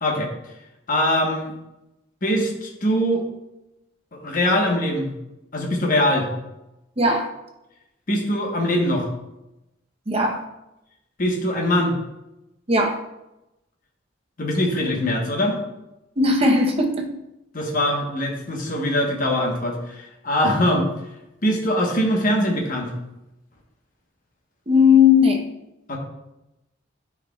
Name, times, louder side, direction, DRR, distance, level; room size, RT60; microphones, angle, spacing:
voice 1, 0.9-1.5 2.2-3.2 4.1-5.1 5.5-6.3 8.1-9.1 11.2-11.9 14.4-15.6 17.5-20.9 21.4-22.9 25.9-26.0, left 1 dB, 45° left, 0 dB, 1.2 m, -22 dB
voice 2, 7.0-7.3 10.1-10.4 12.7-13.0 16.2-17.1 24.7-25.4, left 4 dB, 30° right, 1 dB, 0.8 m, -17 dB
9.8 x 4.7 x 2.3 m, 0.92 s
head